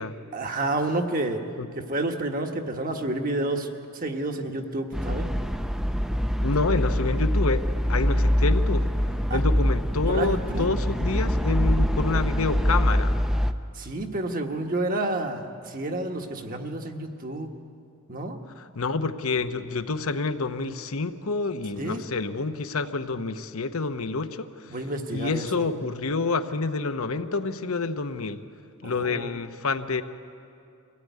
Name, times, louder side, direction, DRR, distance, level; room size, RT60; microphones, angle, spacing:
voice 1, 0.3-1.4 1.7-3.7 3.9-5.3 9.3-9.4 10.1-10.7 13.7-17.5 18.1-18.4 21.8-22.0 24.7-25.7 28.8-29.3, right 2 dB, 40° right, 4 dB, 1.4 m, -29 dB
sound 1, 4.9-13.5, equal, ahead, 0.5 m, -24 dB
voice 2, 6.4-7.6 7.9-8.8 9.3-13.1 18.6-24.8 25.1-28.4 28.8-30.0, left 3 dB, 70° left, 9 dB, 0.9 m, -28 dB
23.5 x 16.5 x 9.4 m, 2.5 s
head